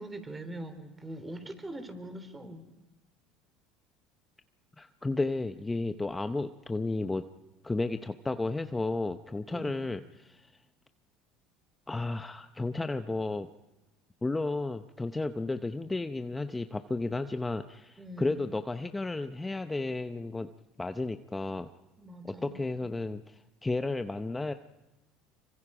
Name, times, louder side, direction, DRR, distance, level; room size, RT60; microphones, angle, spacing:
voice 1, 0.0-2.6 9.5-9.8 18.0-18.4 22.0-22.6, right 1 dB, 20° right, 9 dB, 3.4 m, -42 dB
voice 2, 4.8-7.2 7.6-10.5 11.9-13.5 14.2-20.5 20.8-21.7 22.2-24.5, left 2 dB, 15° left, 9 dB, 0.8 m, -33 dB
26.5 x 24.0 x 4.9 m, 1.0 s
supercardioid pair, 85°, 0 cm